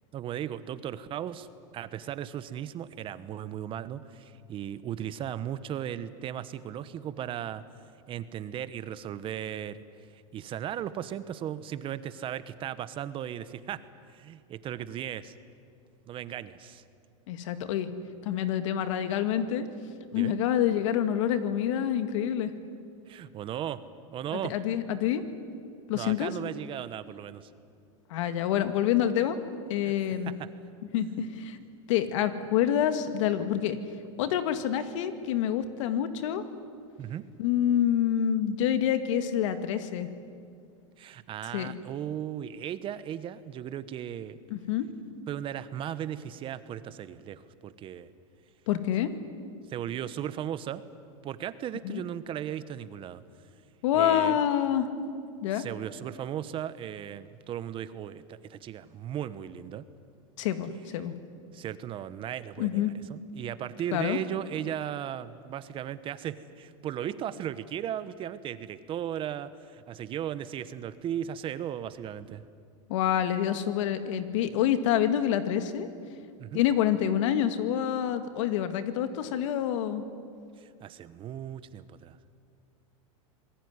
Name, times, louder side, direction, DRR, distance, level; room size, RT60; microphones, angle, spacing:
voice 1, 0.1-1.5 1.7-7.6 8.1-9.8 10.3-13.8 14.1-15.4 16.1-16.8 20.1-20.3 23.1-23.8 24.1-24.5 25.9-27.5 29.8-29.9 30.2-30.5 37.0-37.2 41.0-44.4 45.3-48.1 49.7-50.8 51.2-53.2 53.9-54.4 55.5-59.8 61.5-72.4 76.4-76.6 80.6-82.4, right 10 dB, 30° right, 14 dB, 1.1 m, -36 dB
voice 2, 17.3-17.9 18.2-19.7 20.1-22.5 24.3-25.2 25.9-26.3 28.1-29.4 29.7-30.3 30.9-31.6 31.9-33.8 34.2-36.4 37.4-40.1 41.5-41.7 44.5-44.9 48.7-49.1 51.8-52.0 53.8-54.9 55.4-55.6 60.4-61.1 62.6-62.9 63.9-64.2 72.9-75.9 76.5-80.0, left 10 dB, 70° left, 9 dB, 2.2 m, -27 dB
27.0 x 20.5 x 9.7 m, 2.3 s
supercardioid pair, 135°, 17 cm